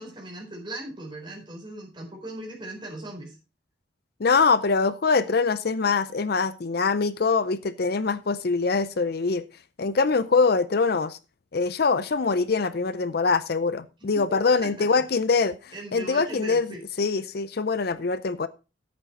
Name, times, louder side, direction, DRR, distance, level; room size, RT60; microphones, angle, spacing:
voice 1, 0.0-3.4 14.0-15.0 15.7-16.8, right 1 dB, 25° right, -1 dB, 4.2 m, -39 dB
voice 2, 4.2-9.4 9.8-11.2 11.5-16.7 17.0-18.5, left 4 dB, 50° left, 14 dB, 0.5 m, -23 dB
9.9 x 8.2 x 4.3 m, 0.31 s
head